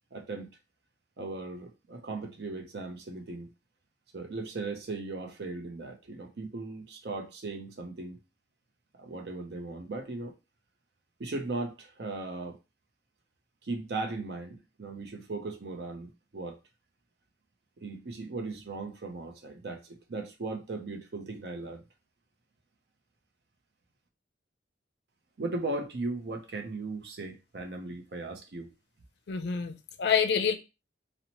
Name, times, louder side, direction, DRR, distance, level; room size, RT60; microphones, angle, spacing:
voice 1, 0.1-0.5 1.2-3.5 4.1-8.2 8.9-10.3 11.2-12.5 13.6-16.6 17.8-21.8 25.4-28.7, right 3 dB, 60° right, 0.6 m, -37 dB
voice 2, 29.3-30.5, left 7 dB, 65° left, 0.4 m, -27 dB
2.9 x 2.0 x 2.8 m
head